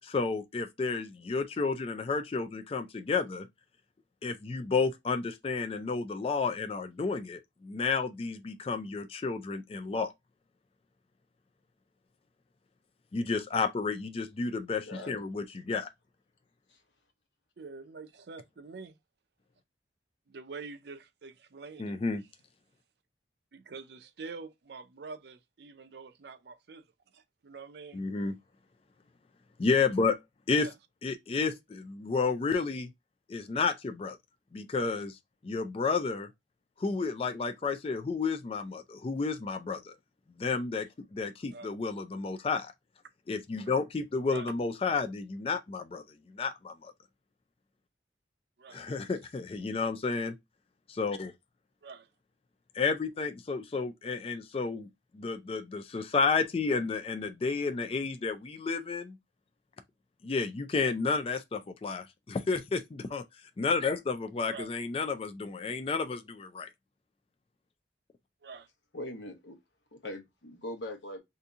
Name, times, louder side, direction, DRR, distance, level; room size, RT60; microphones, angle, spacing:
voice 1, 0.0-3.5 4.2-10.1 13.1-15.9 21.8-22.2 27.9-28.3 29.6-30.2 30.5-30.7 31.0-32.9 33.3-34.2 34.5-35.2 35.4-36.3 36.8-39.9 40.4-42.7 43.3-46.0 46.3-46.9 48.7-50.4 50.9-51.3 52.7-54.9 55.1-59.2 60.2-63.2 63.6-66.7, left 4 dB, 30° left, 0.3 m, -31 dB
voice 2, 14.7-15.2 16.7-16.8 68.9-69.6 69.9-71.2, left 1 dB, 80° left, 1.0 m, -41 dB
voice 3, 17.6-18.9 20.3-21.9 23.5-26.8 27.1-28.0 30.5-30.7 41.5-41.7 44.3-44.5 48.6-48.8 51.8-52.1 64.5-64.7 68.4-68.7, right 4 dB, 65° right, 0.5 m, -46 dB
2.8 x 2.6 x 3.4 m
head